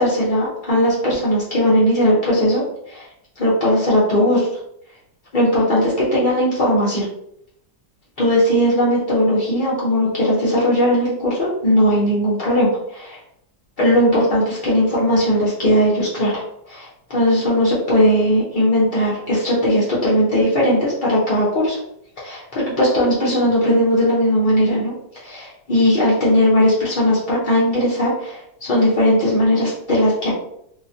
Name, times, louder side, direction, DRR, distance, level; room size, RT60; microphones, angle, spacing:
voice 1, 0.0-2.6 2.9-3.1 3.4-4.5 5.3-7.1 8.2-13.2 13.8-16.4 16.7-21.8 22.2-24.9 25.2-30.4, equal, 85° left, -7 dB, 0.4 m, -18 dB
3.0 x 2.3 x 2.6 m, 0.75 s
omnidirectional pair, 1.9 m